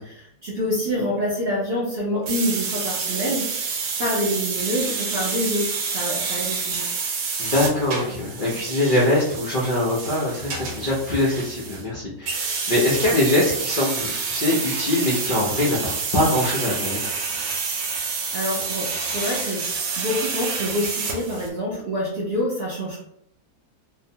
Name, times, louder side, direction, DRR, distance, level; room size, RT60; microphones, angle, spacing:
voice 1, 0.0-3.7 4.0-6.8 18.3-19.6 20.0-23.0, equal, 60° right, -6 dB, 0.6 m, -26 dB
sound 1, 2.3-11.9 12.3-21.5, right 5 dB, 90° right, 1.2 m, -28 dB
voice 2, 7.4-17.0, left 1 dB, 70° left, -5 dB, 0.4 m, -23 dB
2.9 x 2.0 x 2.7 m, 0.76 s
omnidirectional pair, 1.7 m